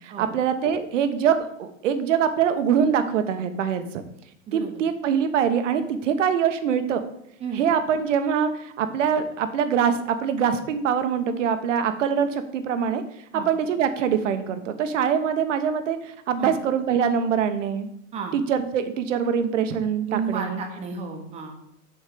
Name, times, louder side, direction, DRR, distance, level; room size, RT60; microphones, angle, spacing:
voice 1, 0.2-3.8 4.5-7.0 7.5-8.5 8.8-12.3 12.5-13.0 13.4-16.0 16.3-17.9 18.3-20.6, right 7 dB, 70° right, 9 dB, 1.2 m, -23 dB
voice 2, 20.1-21.7, right 6 dB, 15° right, 4 dB, 1.0 m, -32 dB
7.1 x 4.4 x 6.8 m, 0.78 s
supercardioid pair, 160°, 39 cm